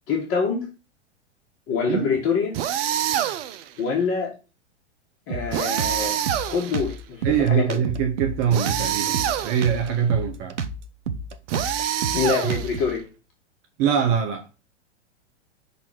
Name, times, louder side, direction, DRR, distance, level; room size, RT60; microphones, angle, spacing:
voice 1, 0.1-0.7 1.7-2.6 3.8-4.3 5.3-6.2 6.5-7.8 12.1-13.0, left 5 dB, 40° left, 2.1 m, -25 dB
sound 1, 2.5-3.7 5.5-7.0 8.5-9.8 11.5-12.9, right 11 dB, 55° right, 0.8 m, -26 dB
Drum kit, 5.3-13.0, right 4 dB, 85° right, 0.9 m, -31 dB
voice 2, 7.2-10.6 12.4-12.5 13.8-14.4, right 8 dB, 40° right, 1.1 m, -23 dB
6.0 x 4.2 x 5.9 m
hypercardioid pair, 110°, 35 cm